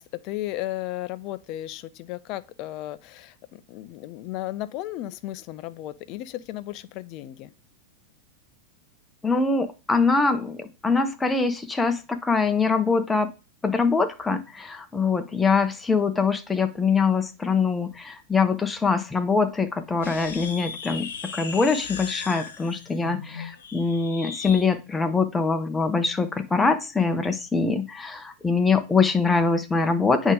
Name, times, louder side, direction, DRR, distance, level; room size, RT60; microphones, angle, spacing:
voice 1, 0.0-7.5 27.0-27.3, left 15 dB, 40° left, 0.5 m, -35 dB
voice 2, 9.2-13.3 13.6-30.3, left 4 dB, 10° left, 0.9 m, -23 dB
sound 1, 20.0-24.7, left 5 dB, 60° left, 1.0 m, -37 dB
8.5 x 3.7 x 5.0 m
figure-of-eight pair, 90°, 0 cm